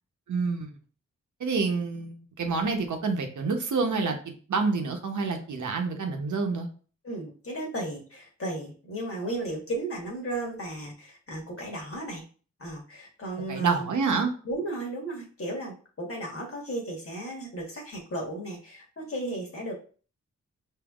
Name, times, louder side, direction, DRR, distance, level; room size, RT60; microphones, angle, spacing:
voice 1, 0.3-0.7 1.4-4.2 4.5-6.7 13.5-14.3, right 4 dB, 75° right, 4 dB, 0.9 m, -27 dB
voice 2, 7.0-12.2 12.6-13.9 14.4-19.7, right 1 dB, 45° left, 0 dB, 1.4 m, -35 dB
5.3 x 2.8 x 2.4 m, 0.40 s
cardioid pair, 75°, 30 cm